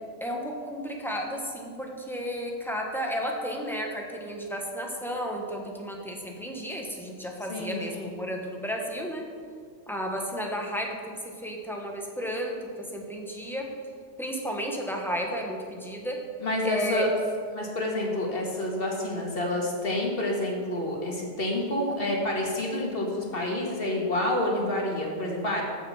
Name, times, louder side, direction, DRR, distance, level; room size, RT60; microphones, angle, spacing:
voice 1, 0.2-9.2 9.9-13.7 14.2-16.2 16.6-17.0, equal, ahead, 0 dB, 1.4 m, -33 dB
voice 2, 7.5-8.1 16.4-17.1 17.5-25.6, left 1 dB, 55° left, -1 dB, 2.1 m, -28 dB
14.5 x 6.0 x 5.8 m, 2.1 s
omnidirectional pair, 1.2 m